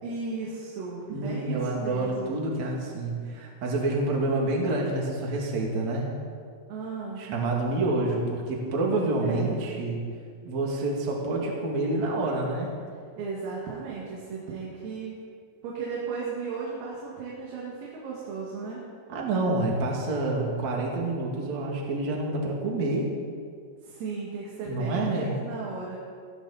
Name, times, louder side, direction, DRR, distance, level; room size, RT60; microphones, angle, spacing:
voice 1, 0.0-2.4 6.7-7.3 9.2-9.6 13.2-15.2 15.6-18.8 23.8-26.0, right 4 dB, 85° right, -5 dB, 4.9 m, -35 dB
voice 2, 1.1-6.1 7.2-10.0 10.4-12.7 19.1-23.1 24.6-25.3, right 2 dB, 45° right, -2 dB, 2.9 m, -28 dB
21.0 x 14.5 x 4.3 m, 2.2 s
omnidirectional pair, 5.9 m